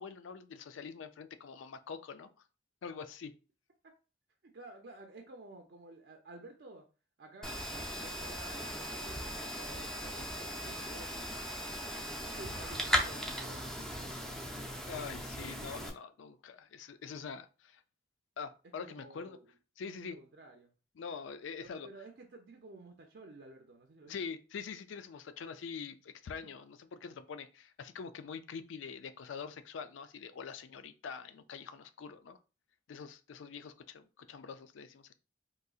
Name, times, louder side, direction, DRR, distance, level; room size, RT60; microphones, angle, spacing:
voice 1, 0.0-2.3 2.8-3.3 14.9-17.8 18.4-19.4 19.8-20.2 21.0-21.9 24.1-32.4 32.9-35.1, left 6 dB, 90° left, 0.4 m, -44 dB
voice 2, 4.4-6.9 7.2-11.3 12.3-14.1 18.8-19.5 20.0-20.7 21.6-24.1, right 2 dB, 65° right, 0.5 m, -52 dB
sound 1, 7.4-15.9, equal, 5° left, 0.4 m, -38 dB
3.9 x 2.7 x 2.4 m
head